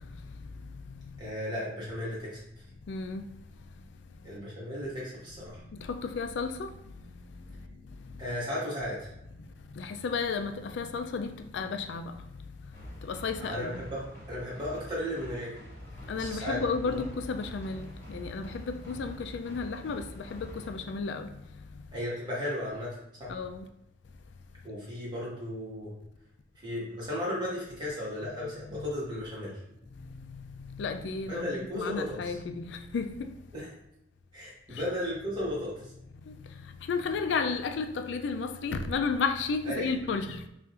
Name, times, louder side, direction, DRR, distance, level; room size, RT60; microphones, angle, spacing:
voice 1, 1.2-2.4 4.2-5.6 8.2-9.1 13.4-14.0 14.3-15.6 16.1-17.0 21.9-23.3 24.6-25.9 26.6-29.5 31.3-32.3 33.5-33.7 34.3-35.9 39.6-39.8, left 1 dB, 25° right, 1.4 m, -35 dB
voice 2, 2.9-3.3 5.7-6.7 9.8-12.1 13.0-13.8 16.1-21.3 23.3-23.7 28.7-28.9 30.0-33.3 34.7-34.8 36.3-36.4 36.9-40.5, left 4 dB, 80° left, 0.4 m, -33 dB
sound 1, 12.7-20.7, equal, 15° left, 1.2 m, -46 dB
5.3 x 2.5 x 2.5 m
head